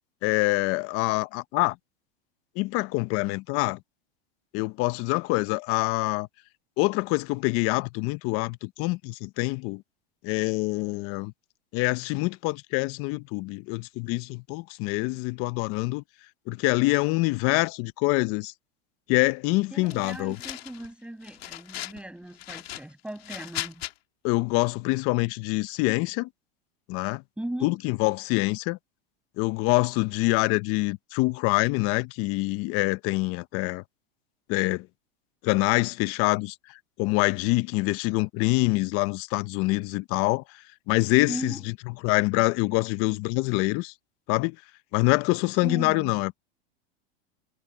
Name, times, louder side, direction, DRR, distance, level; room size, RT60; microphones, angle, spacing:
voice 1, 0.2-1.8 2.6-3.8 4.5-6.3 6.8-9.8 10.2-11.3 11.7-16.0 16.5-18.5 19.1-20.4 24.2-26.3 26.9-27.2 27.6-28.8 29.4-33.8 34.5-34.9 35.4-36.5 37.0-40.4 40.9-41.6 42.0-43.9 44.3-44.6 44.9-46.4, left 23 dB, 50° left, 1.1 m, -25 dB
voice 2, 19.7-23.8 27.4-27.7 41.3-41.7 45.6-46.1, right 1 dB, 5° right, 8.0 m, -37 dB
sound 1, 19.9-20.9 21.2-22.0 22.4-23.9, left 15 dB, 80° left, 2.7 m, -38 dB
supercardioid pair, 120°, 30 cm